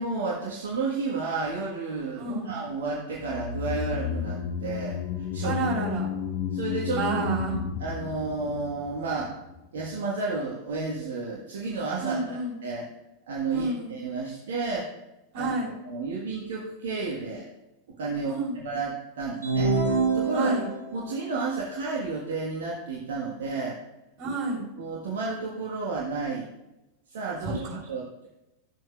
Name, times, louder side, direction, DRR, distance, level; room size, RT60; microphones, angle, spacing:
voice 1, 0.0-5.6 6.5-7.0 7.8-9.3 9.7-12.9 13.3-14.9 15.3-15.5 15.8-17.4 18.0-19.7 20.1-20.6 20.9-23.8 24.8-26.5 27.1-28.3, right 4 dB, 60° right, -4 dB, 1.4 m, -31 dB
voice 2, 2.2-2.6 5.4-6.1 6.9-7.6 12.0-12.5 13.5-13.9 15.3-15.7 18.2-18.6 20.3-20.7 24.2-24.7 27.5-27.8, right 3 dB, 40° right, -4 dB, 3.5 m, -29 dB
sound 1, 3.2-9.6 9.8-9.9, left 7 dB, 50° left, 0.8 m, -32 dB
sound 2, 19.4-21.0, right 4 dB, 80° right, 1.2 m, -25 dB
13.0 x 7.7 x 2.4 m, 0.94 s
figure-of-eight pair, 90°, 0 cm